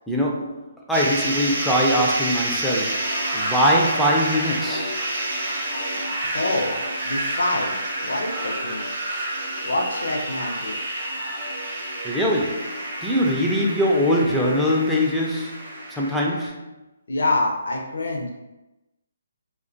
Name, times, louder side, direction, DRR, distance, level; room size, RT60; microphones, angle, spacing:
voice 1, 0.1-5.0 12.0-16.7, equal, ahead, -5 dB, 0.3 m, -22 dB
sound 1, 0.9-16.5, right 1 dB, 40° right, 0.6 m, -29 dB
voice 2, 6.2-6.8 7.1-7.8 8.0-8.8 9.6-10.8 17.1-18.3, left 2 dB, 65° left, 1 dB, 0.5 m, -26 dB
2.3 x 2.1 x 2.5 m, 0.99 s
figure-of-eight pair, 140°, 0 cm